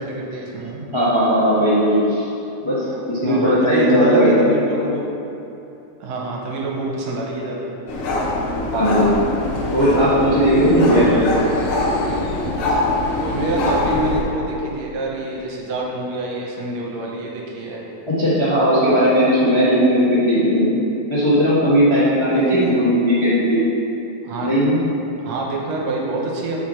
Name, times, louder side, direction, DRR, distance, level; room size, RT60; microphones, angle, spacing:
voice 1, 0.0-0.8 2.9-3.0 3.2-5.0 6.0-7.8 10.8-11.4 13.2-17.8 22.3-22.7 24.2-24.5 25.2-26.6, right 2 dB, 70° right, -2 dB, 1.9 m, -26 dB
voice 2, 0.9-2.2 2.6-4.5 8.7-9.1 9.7-11.1 18.1-20.8 21.1-23.7 24.4-24.8, equal, 40° left, -11 dB, 0.4 m, -17 dB
sound 1, 7.9-14.2, left 2 dB, 65° left, 1.4 m, -23 dB
6.5 x 4.8 x 4.3 m, 2.9 s
omnidirectional pair, 3.4 m